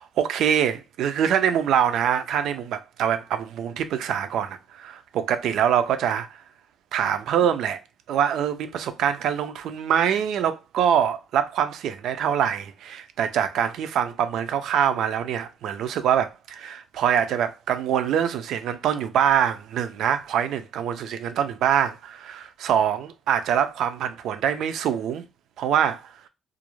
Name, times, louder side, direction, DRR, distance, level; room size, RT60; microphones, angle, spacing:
voice 1, 0.0-6.3 6.9-7.8 8.1-25.2 25.6-26.1, right 9 dB, 80° right, 0.3 m, -24 dB
2.4 x 2.0 x 3.0 m
cardioid pair, 90°, 0 cm